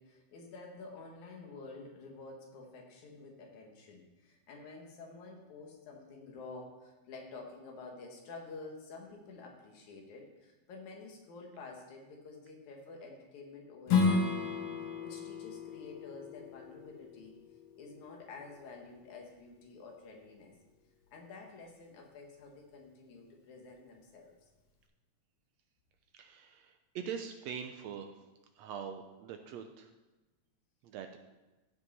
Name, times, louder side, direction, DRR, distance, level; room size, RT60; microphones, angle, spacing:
voice 1, 0.0-14.5 14.8-17.4 17.8-20.6 21.1-24.3, left 3 dB, 75° left, 1 dB, 2.8 m, -50 dB
Strum, 13.9-19.1, left 4 dB, 55° left, 1.5 m, -34 dB
voice 2, 26.1-28.1 28.6-29.9 30.8-31.2, right 7 dB, 80° right, 6 dB, 1.7 m, -43 dB
15.0 x 5.5 x 4.2 m, 1.1 s
omnidirectional pair, 3.5 m